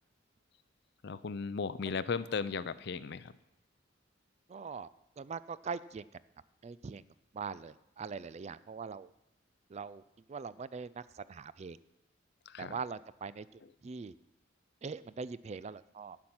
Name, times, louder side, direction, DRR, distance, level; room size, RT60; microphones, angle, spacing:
voice 1, 1.0-3.3 12.5-12.8, left 5 dB, 60° left, 15 dB, 0.5 m, -36 dB
voice 2, 4.5-4.9 5.2-6.1 6.6-7.0 7.3-9.1 9.7-10.0 10.3-11.8 12.6-14.1 14.8-16.2, right 5 dB, 35° right, 16 dB, 0.3 m, -42 dB
12.0 x 5.9 x 8.7 m, 0.88 s
head